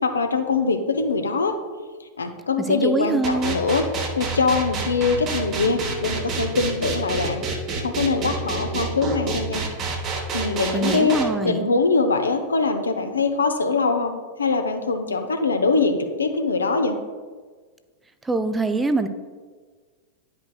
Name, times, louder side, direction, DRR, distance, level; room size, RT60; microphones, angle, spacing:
voice 1, 0.0-1.6 2.2-3.9 4.2-7.4 7.8-9.6 10.3-11.2 11.4-14.1 14.4-17.0, left 4 dB, 75° left, 6 dB, 0.6 m, -22 dB
voice 2, 2.7-3.6 10.7-11.7 18.2-19.1, right 3 dB, 10° right, 9 dB, 0.4 m, -24 dB
sound 1, 3.2-11.2, right 4 dB, 30° right, 0.9 m, -28 dB
10.0 x 5.2 x 2.3 m, 1.5 s
figure-of-eight pair, 90°, 0 cm